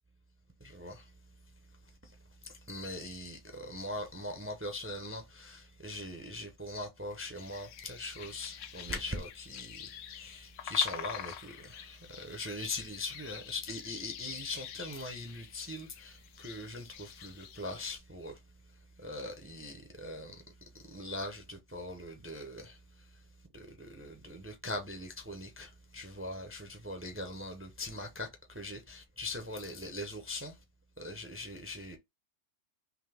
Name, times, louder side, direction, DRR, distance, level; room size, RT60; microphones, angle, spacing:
voice 1, 0.6-1.1 2.0-2.1 2.5-18.4 19.0-20.4 20.9-22.8 23.5-30.6 31.0-32.0, left 2 dB, 15° right, 0.4 m, -40 dB
sound 1, 7.4-18.0, left 10 dB, 90° left, 0.9 m, -47 dB
3.7 x 3.0 x 3.3 m
omnidirectional pair, 1.2 m